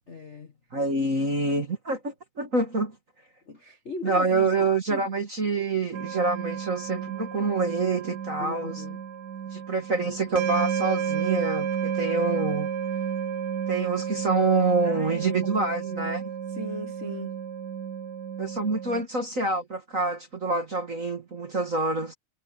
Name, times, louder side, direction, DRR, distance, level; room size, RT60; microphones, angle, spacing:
voice 1, 0.1-0.5 3.5-5.1 8.4-9.0 10.0-10.1 14.8-17.4, left 2 dB, 40° left, 1.0 m, -39 dB
voice 2, 0.7-3.0 4.0-8.8 9.5-12.7 13.7-16.3 18.4-22.1, right 3 dB, 30° right, 1.7 m, -26 dB
sound 1, 5.9-19.0, right 8 dB, 90° right, 3.5 m, -32 dB
omnidirectional pair, 3.7 m